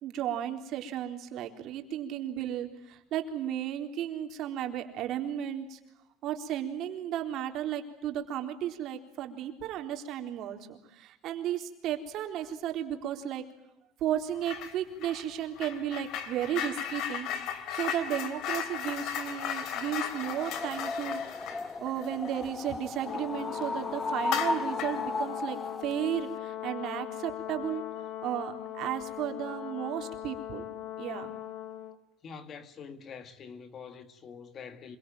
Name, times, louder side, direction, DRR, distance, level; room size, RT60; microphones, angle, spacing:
voice 1, 0.0-5.8 6.2-13.4 14.0-17.3 17.7-21.5 21.8-27.8 28.2-30.6 31.0-31.3, right 10 dB, 55° right, 3.9 m, -34 dB
sound 1, 14.4-14.7 15.0-23.2 23.5-23.7 24.2-25.0, left 9 dB, 60° left, 3.5 m, -36 dB
sound 2, 20.1-25.9, left 3 dB, 15° left, 1.3 m, -35 dB
Brass instrument, 23.0-32.0, left 11 dB, 75° left, 2.8 m, -40 dB
voice 2, 32.2-35.0, left 6 dB, 35° left, 2.2 m, -45 dB
26.5 x 23.5 x 9.2 m
cardioid pair, 145°, 0 cm